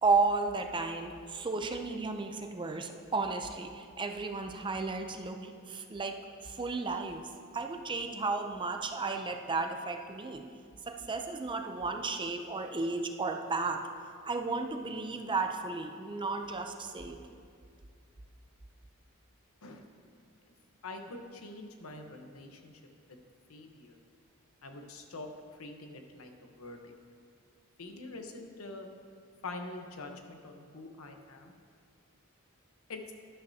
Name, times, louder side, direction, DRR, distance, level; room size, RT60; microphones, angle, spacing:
voice 1, 0.0-7.3 7.5-10.4 10.9-13.8 14.2-17.2, right 3 dB, 20° right, 5 dB, 0.5 m, -33 dB
voice 2, 20.8-22.8 23.1-23.2 23.5-24.0 24.6-26.9 27.8-28.9 29.4-31.5 32.9-33.1, left 2 dB, 80° left, 4 dB, 1.0 m, -45 dB
12.5 x 11.0 x 2.8 m, 2.2 s
head